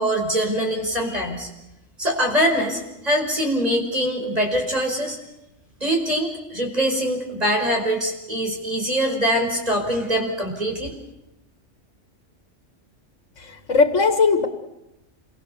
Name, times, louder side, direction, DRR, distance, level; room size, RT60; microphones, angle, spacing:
voice 1, 0.0-1.5 2.0-5.2 5.8-10.9, equal, 30° right, 2 dB, 5.5 m, -23 dB
voice 2, 13.4-14.5, left 4 dB, 80° left, 7 dB, 2.1 m, -18 dB
28.0 x 23.0 x 6.9 m, 0.90 s
omnidirectional pair, 1.3 m